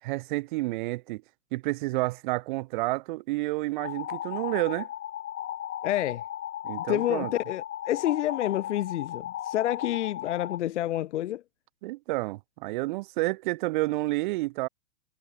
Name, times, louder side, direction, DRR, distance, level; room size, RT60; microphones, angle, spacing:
voice 1, 0.0-1.2 1.5-4.9 6.6-7.3 11.8-14.7, right 21 dB, 35° right, 3.2 m, -30 dB
sound 1, 3.8-10.6, left 11 dB, 75° left, 2.3 m, -36 dB
voice 2, 5.8-6.2 6.9-11.4, left 13 dB, 55° left, 1.0 m, -28 dB
supercardioid pair, 175°, 41 cm